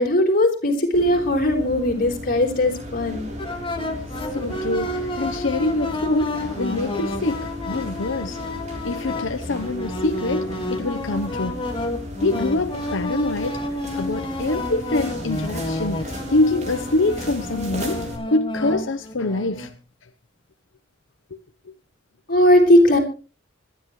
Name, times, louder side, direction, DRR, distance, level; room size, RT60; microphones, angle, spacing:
voice 1, 0.0-3.4 22.3-23.0, left 1 dB, 50° left, 4.3 m, -18 dB
sound 1, 0.9-18.2, equal, 35° right, 3.6 m, -35 dB
sound 2, 3.4-19.7, left 1 dB, 25° left, 2.0 m, -30 dB
voice 2, 4.1-8.4 8.8-11.7 12.2-13.6 13.9-19.7, left 2 dB, 85° left, 0.9 m, -25 dB
25.5 x 10.5 x 3.2 m
head